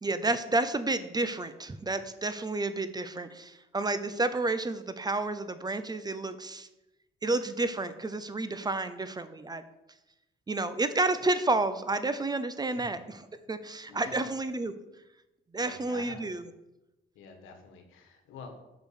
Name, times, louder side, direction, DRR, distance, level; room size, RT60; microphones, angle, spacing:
voice 1, 0.0-6.7 7.2-9.6 10.5-14.7 15.5-16.4, right 2 dB, 20° right, 12 dB, 0.6 m, -30 dB
voice 2, 13.9-14.3 15.6-16.2 17.1-18.6, left 4 dB, 90° left, 5 dB, 1.4 m, -47 dB
6.0 x 5.3 x 6.4 m, 0.96 s
cardioid pair, 90°, 20 cm